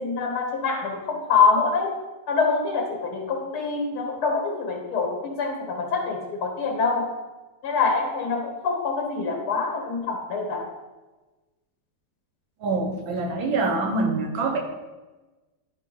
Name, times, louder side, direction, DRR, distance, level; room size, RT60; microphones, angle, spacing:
voice 1, 0.0-1.9 2.3-7.1 7.6-10.7, left 4 dB, 85° left, 2 dB, 2.5 m, -25 dB
voice 2, 12.6-14.6, right 3 dB, 70° right, 2 dB, 1.8 m, -25 dB
10.5 x 3.9 x 5.4 m, 1.2 s
omnidirectional pair, 2.3 m